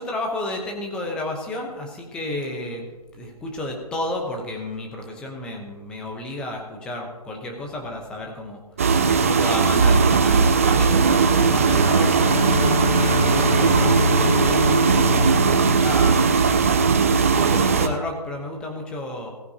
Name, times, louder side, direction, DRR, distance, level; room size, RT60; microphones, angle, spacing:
voice 1, 0.0-2.9 3.1-8.6 9.2-12.1 12.8-19.3, left 1 dB, 5° left, 1 dB, 0.8 m, -32 dB
sound 1, 8.8-17.9, right 5 dB, 20° right, 0.5 m, -18 dB
Bowed string instrument, 11.5-17.0, left 4 dB, 90° left, 0.8 m, -27 dB
18.0 x 9.5 x 2.8 m, 1.2 s
figure-of-eight pair, 155°, 20 cm